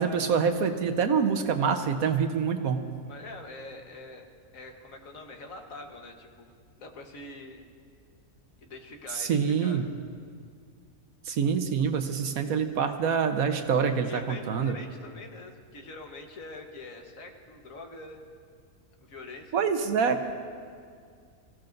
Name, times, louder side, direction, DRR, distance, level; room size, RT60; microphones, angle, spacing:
voice 1, 0.0-2.8 9.1-9.9 11.3-14.8 19.5-20.3, right 6 dB, 80° right, 7 dB, 1.4 m, -26 dB
voice 2, 3.1-6.5 6.8-7.7 8.6-9.9 14.1-18.2 19.0-19.6, left 2 dB, 70° left, 3 dB, 1.7 m, -44 dB
26.0 x 15.5 x 2.6 m, 2.2 s
omnidirectional pair, 1.5 m